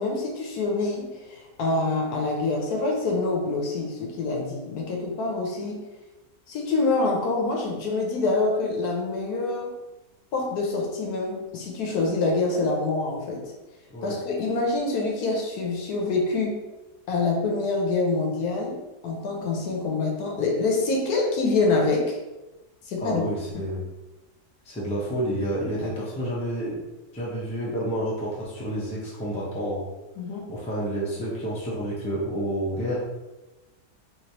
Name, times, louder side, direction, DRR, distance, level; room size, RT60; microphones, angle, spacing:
voice 1, 0.0-5.8 6.5-9.7 10.3-13.5 14.0-16.6 17.1-22.2 22.8-23.2 30.2-30.4, left 3 dB, 70° left, 0 dB, 1.1 m, -26 dB
voice 2, 23.0-23.8 24.6-26.8 27.1-29.8 30.5-33.0, right 1 dB, 10° left, -7 dB, 0.4 m, -29 dB
3.1 x 3.1 x 2.8 m, 1.1 s
omnidirectional pair, 1.8 m